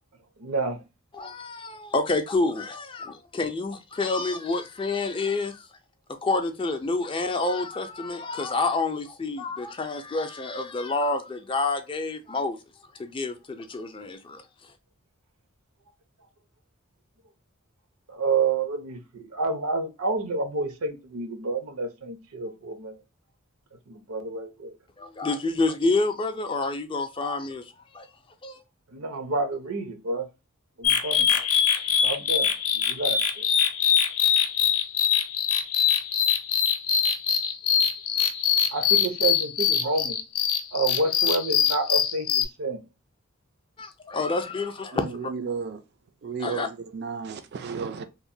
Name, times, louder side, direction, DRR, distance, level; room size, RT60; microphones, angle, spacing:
voice 1, 0.4-0.8 18.1-22.9 23.9-24.7 28.9-30.3 30.8-31.3 32.0-33.4 38.7-40.2 40.7-42.8, right 3 dB, 80° right, 0.7 m, -29 dB
voice 2, 1.1-5.7 6.2-12.6 13.0-14.4 25.0-27.6 27.9-28.1 28.4-28.6 43.8-45.1 46.4-46.7, left 3 dB, 25° left, 0.3 m, -28 dB
sound 1, 30.8-42.5, left 8 dB, 80° left, 0.5 m, -23 dB
voice 3, 44.9-45.8 46.2-48.0, right 5 dB, 50° right, 0.3 m, -33 dB
2.9 x 2.1 x 2.6 m
head